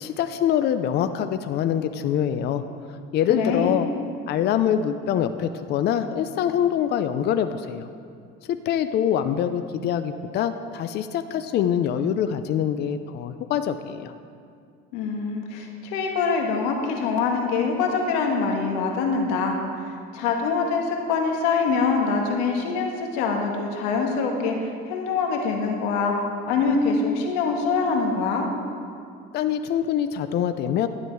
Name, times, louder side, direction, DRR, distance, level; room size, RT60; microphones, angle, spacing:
voice 1, 0.0-2.6 3.1-3.9 4.3-7.9 8.5-14.1 29.3-30.9, left 9 dB, 50° left, 10 dB, 0.6 m, -24 dB
voice 2, 3.3-3.8 14.9-26.1 26.5-28.5, left 4 dB, 90° left, 2 dB, 1.5 m, -24 dB
12.0 x 9.8 x 4.7 m, 2.3 s
cardioid pair, 115°, 21 cm